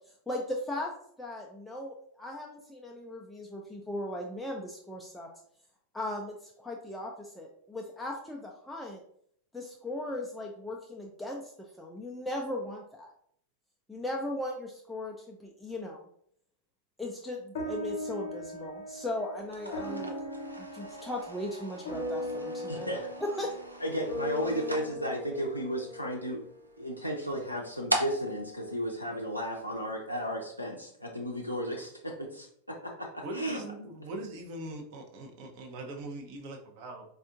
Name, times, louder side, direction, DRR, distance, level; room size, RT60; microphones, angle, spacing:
voice 1, 0.3-0.9 1.2-5.3 5.9-9.0 9.5-13.1 13.9-16.1 17.0-20.2 20.6-22.9 23.2-23.5, left 1 dB, 5° left, -1 dB, 0.4 m, -38 dB
sound 1, 17.5-26.2, equal, 55° left, 0.9 m, -39 dB
sound 2, 19.4-29.8, right 1 dB, 85° right, 0.5 m, -41 dB
voice 2, 22.7-23.1 23.8-26.4 26.8-33.9, equal, 90° left, -1 dB, 0.4 m, -34 dB
voice 3, 33.2-37.1, right 1 dB, 45° right, 1 dB, 0.7 m, -41 dB
4.2 x 2.4 x 2.4 m, 0.67 s
figure-of-eight pair, 90°, 0 cm